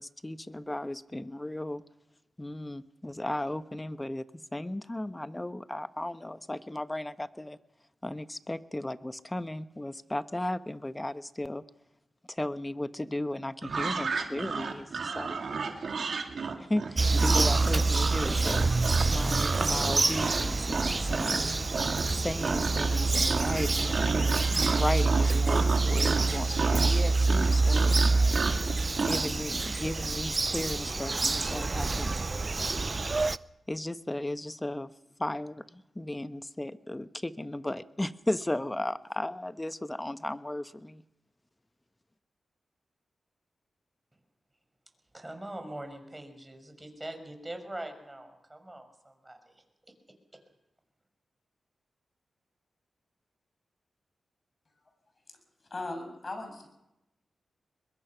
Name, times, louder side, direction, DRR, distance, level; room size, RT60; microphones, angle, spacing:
voice 1, 0.0-1.8 2.4-4.2 4.5-7.6 8.0-11.6 12.3-15.5 16.6-18.7 19.0-21.5 22.2-28.0 29.0-32.2 33.7-34.9 35.2-41.0, left 1 dB, 20° left, 12 dB, 1.1 m, -35 dB
sound 1, 13.6-21.4 21.7-22.2 22.4-23.0 23.3-29.3, right 5 dB, 70° right, 2.5 m, -32 dB
Bird vocalization bird call bird song, 17.0-33.4, right 3 dB, 40° right, 0.6 m, -26 dB
voice 2, 45.1-49.6 50.3-50.4, right 1 dB, 20° right, 6 dB, 5.8 m, -42 dB
voice 3, 55.7-56.7, left 2 dB, 45° left, 5 dB, 7.2 m, -37 dB
23.0 x 21.5 x 5.9 m, 0.91 s
cardioid pair, 45°, 0 cm